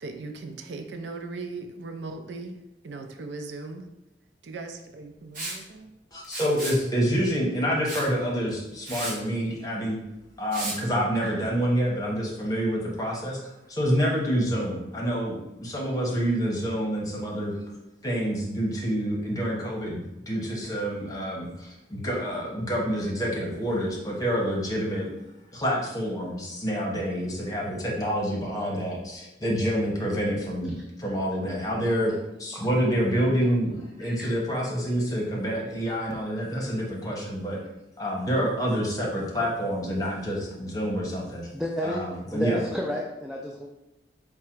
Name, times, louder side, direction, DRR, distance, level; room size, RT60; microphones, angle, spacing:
voice 1, 0.0-2.6 2.8-3.9 4.4-5.9, right 3 dB, 70° right, 6 dB, 0.4 m, -38 dB
Liquid, 5.3-5.6 6.2-6.8 7.9-8.1 8.5-8.6 8.9-9.2 10.5-10.8, right 2 dB, 50° right, 1.4 m, -33 dB
voice 2, 6.1-10.0 10.4-13.4 13.7-17.6 18.0-25.1 25.5-37.6 38.0-41.5 41.8-42.6, equal, 20° left, -2 dB, 1.0 m, -27 dB
voice 3, 34.0-34.3 41.5-42.0 42.3-43.7, equal, ahead, -1 dB, 0.3 m, -31 dB
4.8 x 2.2 x 4.4 m, 0.93 s
head